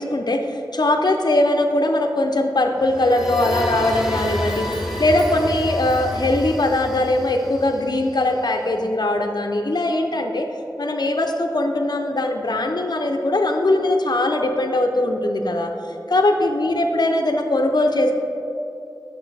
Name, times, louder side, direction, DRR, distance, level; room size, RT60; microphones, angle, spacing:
voice 1, 0.0-4.7 5.0-10.5 10.8-15.7 16.1-18.1, left 1 dB, 60° left, 4 dB, 0.5 m, -20 dB
sound 1, 2.8-8.5, left 1 dB, 5° right, 0.9 m, -29 dB
6.4 x 5.4 x 3.2 m, 2.7 s
wide cardioid pair, 45°, 8 cm